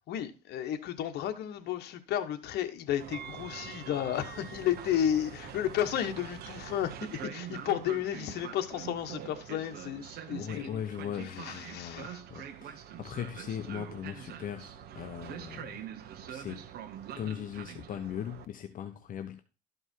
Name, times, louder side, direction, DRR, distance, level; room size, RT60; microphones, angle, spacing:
voice 1, 0.1-10.7 11.3-12.2, left 10 dB, 75° left, 1.4 m, -33 dB
Train, 3.0-18.4, right 9 dB, 65° right, 1.3 m, -44 dB
voice 2, 10.3-15.8 16.3-16.6 17.2-19.4, left 9 dB, 55° left, 1.0 m, -39 dB
13.0 x 5.4 x 4.6 m
cardioid pair, 110°, 17 cm